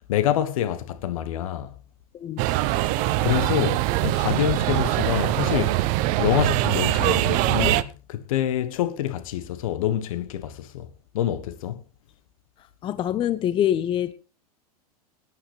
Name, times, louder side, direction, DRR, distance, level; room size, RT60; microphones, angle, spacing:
voice 1, 0.1-1.7 3.2-5.9 6.2-10.9 11.1-11.8, left 11 dB, 60° left, 1.3 m, -26 dB
voice 2, 2.1-2.5 12.8-14.1, left 11 dB, 25° left, 0.7 m, -25 dB
sound 1, 2.4-7.8, right 16 dB, 40° right, 0.7 m, -23 dB
22.5 x 9.4 x 3.3 m
figure-of-eight pair, 95°, 20 cm